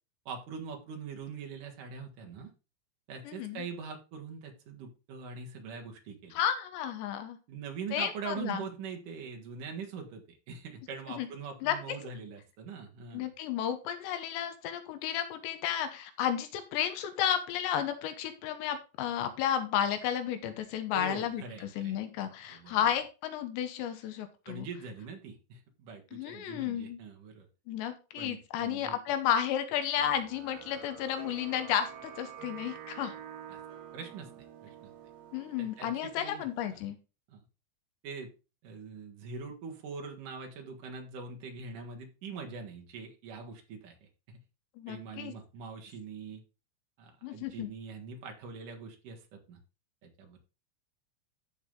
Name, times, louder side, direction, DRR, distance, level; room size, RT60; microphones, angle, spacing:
voice 1, 0.3-2.5 3.1-6.4 7.5-13.3 20.9-22.0 22.5-22.9 24.5-27.5 28.2-28.9 33.5-33.6 33.9-34.9 35.6-36.8 37.3-37.4 38.0-38.3 38.6-44.0 44.3-44.4 44.9-46.4 47.0-49.6 50.0-50.4, right 5 dB, 60° right, 2 dB, 2.5 m, -43 dB
voice 2, 3.3-3.6 6.3-7.4 7.9-8.6 11.1-11.3 11.6-11.8 13.1-24.7 26.1-27.0 27.7-33.1 35.3-37.0 44.8-45.3 47.2-47.7, left 9 dB, 80° left, 9 dB, 3.1 m, -32 dB
sound 1, 29.9-36.8, right 9 dB, 75° right, 3.9 m, -48 dB
14.0 x 4.7 x 3.7 m, 0.32 s
omnidirectional pair, 5.1 m